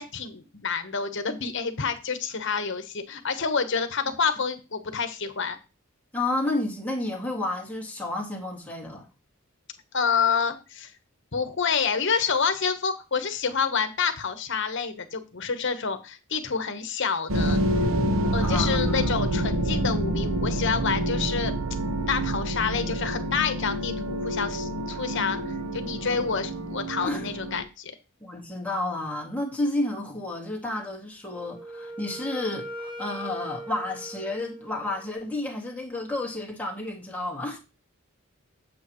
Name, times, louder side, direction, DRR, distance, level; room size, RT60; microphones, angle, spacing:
voice 1, 0.0-5.6 9.9-10.9 11.3-17.6 18.3-21.5 22.1-27.9, left 5 dB, 60° left, 1.1 m, -28 dB
voice 2, 6.1-9.1 18.4-19.2 27.0-27.2 28.2-37.6, left 2 dB, 10° left, 2.1 m, -31 dB
sound 1, 17.3-27.6, right 1 dB, 80° right, 1.0 m, -27 dB
Wind instrument woodwind instrument, 31.3-35.2, right 1 dB, 25° right, 1.1 m, -40 dB
8.3 x 7.7 x 3.1 m
head